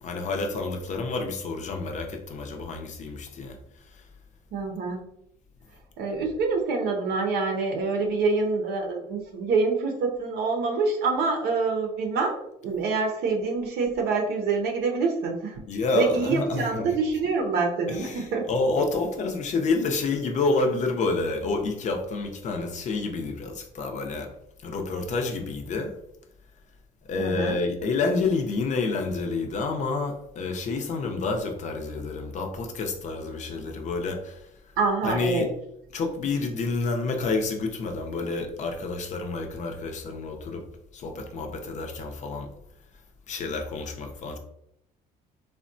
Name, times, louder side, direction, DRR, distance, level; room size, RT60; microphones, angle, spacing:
voice 1, 0.0-3.6 3.9-4.0 15.7-17.0 17.9-24.3 24.6-25.9 27.0-34.4 35.0-35.5 35.9-40.6 40.9-42.5 43.3-44.4, left 3 dB, 45° left, 4 dB, 0.6 m, -29 dB
voice 2, 4.5-5.0 6.0-15.6 15.9-18.4 27.2-27.6 34.8-35.5, right 4 dB, 75° right, 2 dB, 0.6 m, -26 dB
3.4 x 2.1 x 2.5 m, 0.77 s
cardioid pair, 110°, 17 cm